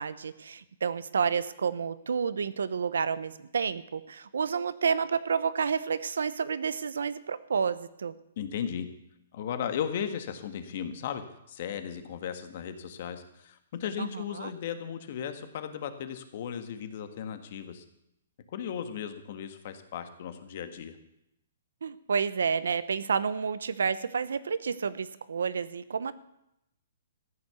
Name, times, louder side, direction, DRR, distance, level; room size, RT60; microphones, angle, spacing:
voice 1, 0.0-8.1 14.0-14.5 21.8-26.1, right 6 dB, 90° right, 15 dB, 0.9 m, -30 dB
voice 2, 8.4-8.9 9.3-17.8 18.5-20.9, left 8 dB, 45° left, 9 dB, 1.6 m, -36 dB
14.5 x 9.6 x 7.0 m, 0.82 s
hypercardioid pair, 165°, 0 cm